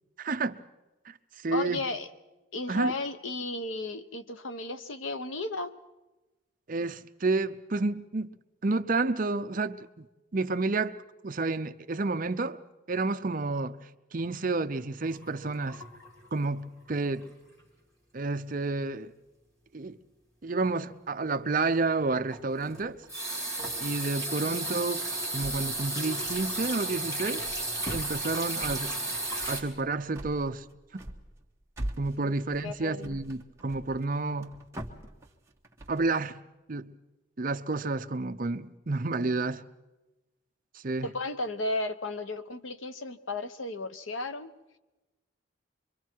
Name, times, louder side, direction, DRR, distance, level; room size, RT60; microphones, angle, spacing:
voice 1, 0.2-0.6 1.1-1.2 1.4-1.8 2.7-2.9 6.7-8.3 8.6-10.1 10.3-11.0 11.2-12.6 12.9-13.8 14.1-15.8 16.3-17.3 18.1-19.1 19.7-20.0 20.4-23.0 23.8-25.1 25.3-27.5 27.9-28.9 29.5-30.6 32.0-34.6 35.9-36.4 36.7-36.9 37.4-39.6 40.8-41.1, right 3 dB, 45° right, 0.6 m, -30 dB
voice 2, 1.5-2.1 2.5-5.8 32.2-32.3 32.6-33.2 41.0-44.5, left 2 dB, 80° left, 1.0 m, -34 dB
sound 1, 15.0-16.6 16.9-17.2 17.6-17.7 22.3-29.6, right 2 dB, 15° left, 3.1 m, -34 dB
sound 2, 25.4-26.0 26.2-26.8 27.2-36.2, right 1 dB, 15° right, 1.4 m, -43 dB
26.5 x 23.5 x 4.6 m
head